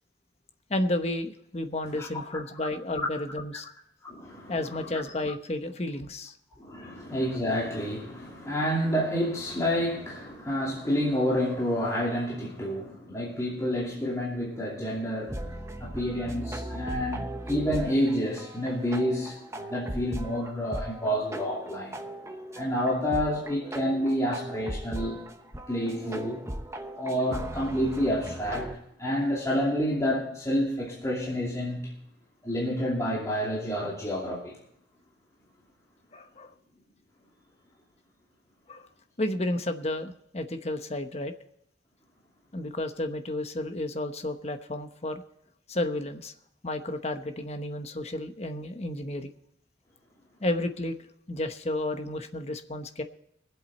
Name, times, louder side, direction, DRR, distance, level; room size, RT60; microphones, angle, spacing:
voice 1, 0.7-3.7 4.5-6.3 6.8-7.0 36.1-36.5 38.7-38.9 39.2-41.3 42.5-45.2 45.7-46.3 46.6-49.3 50.4-50.9 51.3-53.0, left 1 dB, 35° left, 8 dB, 1.0 m, -32 dB
voice 2, 4.0-4.6 4.9-5.0 6.6-15.5 15.8-22.0 22.5-25.2 25.7-26.4 26.9-28.7 29.0-31.9 32.4-34.6, equal, 15° left, -5 dB, 2.7 m, -29 dB
sound 1, 15.3-28.7, right 1 dB, 15° right, 1.0 m, -38 dB
22.0 x 8.1 x 4.2 m, 0.76 s
head